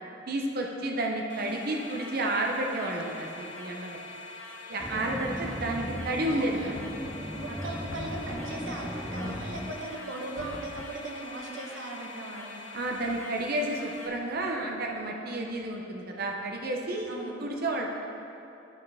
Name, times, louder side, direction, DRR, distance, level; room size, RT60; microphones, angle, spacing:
voice 1, 0.3-4.0 4.7-7.1 7.5-7.6 12.7-17.1 17.4-17.9, right 1 dB, 50° right, 1 dB, 0.8 m, -31 dB
sound 1, 1.3-14.1, left 2 dB, 65° left, 0.9 m, -44 dB
sound 2, 4.8-9.8, equal, ahead, 0.3 m, -37 dB
Knock, 6.7-7.5 7.9-8.7 9.2-9.9 10.4-11.1, left 3 dB, 85° left, 0.5 m, -45 dB
voice 2, 7.4-12.6 17.1-17.6, right 2 dB, 75° right, 0 dB, 1.1 m, -39 dB
11.0 x 5.5 x 3.5 m, 2.8 s
head